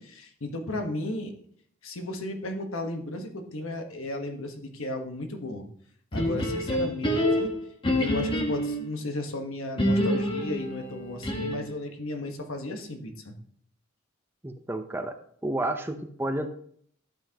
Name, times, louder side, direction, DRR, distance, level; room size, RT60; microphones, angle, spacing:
voice 1, 0.0-1.3 1.8-5.7 6.1-7.5 7.9-13.4, left 1 dB, 80° left, 4 dB, 1.3 m, -34 dB
sound 1, 6.1-8.9 9.8-11.8, left 1 dB, 25° left, 1.2 m, -27 dB
voice 2, 14.4-15.1 15.4-16.5, right 1 dB, 10° right, 6 dB, 0.6 m, -30 dB
12.0 x 7.3 x 2.9 m, 0.63 s
head